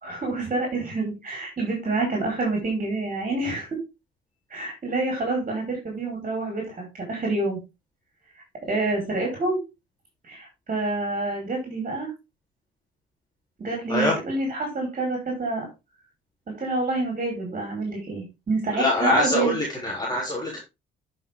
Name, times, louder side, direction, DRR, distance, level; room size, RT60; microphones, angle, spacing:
voice 1, 0.0-3.7 4.5-7.6 8.6-9.6 10.2-12.1 13.6-15.6 16.6-19.5, right 2 dB, 40° right, 0 dB, 5.0 m, -27 dB
voice 2, 18.8-20.6, left 1 dB, 20° left, -3 dB, 3.8 m, -24 dB
11.0 x 6.0 x 3.7 m, 0.26 s
cardioid pair, 90°, 20 cm